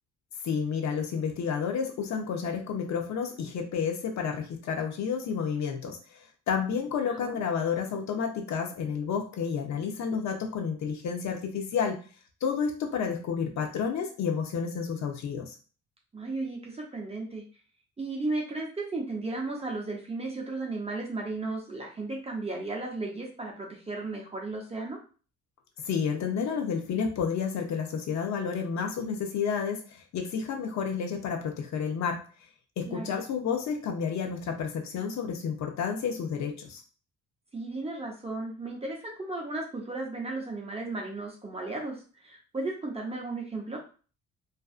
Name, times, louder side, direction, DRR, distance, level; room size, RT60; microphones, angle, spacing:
voice 1, 0.4-6.2 6.5-12.0 12.4-15.6 25.8-32.2 32.8-36.8, left 6 dB, 65° left, 4 dB, 0.7 m, -30 dB
voice 2, 16.1-17.4 18.0-25.0 32.9-33.1 37.5-43.8, right 2 dB, 20° right, -1 dB, 0.7 m, -35 dB
2.5 x 2.4 x 2.4 m, 0.38 s
cardioid pair, 90°, 30 cm